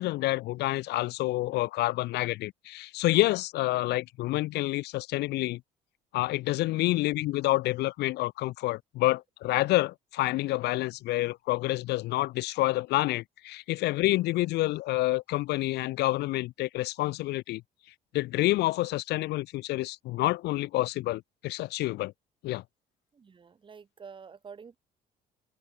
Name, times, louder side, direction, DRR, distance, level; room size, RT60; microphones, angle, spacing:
voice 1, 0.0-5.6 6.1-17.6 18.1-22.1 22.4-22.6, left 18 dB, 80° left, 0.8 m, -28 dB
voice 2, 23.1-24.8, right 6 dB, 30° right, 1.7 m, -48 dB
open air
cardioid pair, 110°, 17 cm